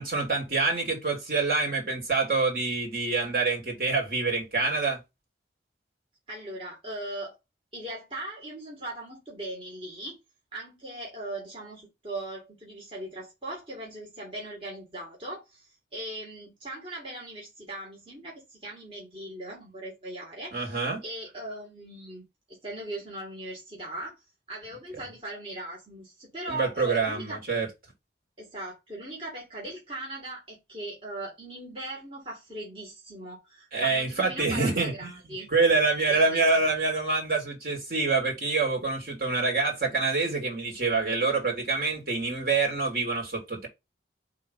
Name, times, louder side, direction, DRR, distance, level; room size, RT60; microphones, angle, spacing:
voice 1, 0.0-5.0 20.5-21.0 26.5-27.7 33.7-43.7, right 3 dB, 55° right, 2.9 m, -26 dB
voice 2, 6.3-7.3 7.7-10.2 10.5-22.2 22.5-24.2 24.5-27.4 28.4-35.5 36.1-36.6, right 1 dB, 30° right, 2.1 m, -39 dB
5.2 x 3.9 x 5.5 m
head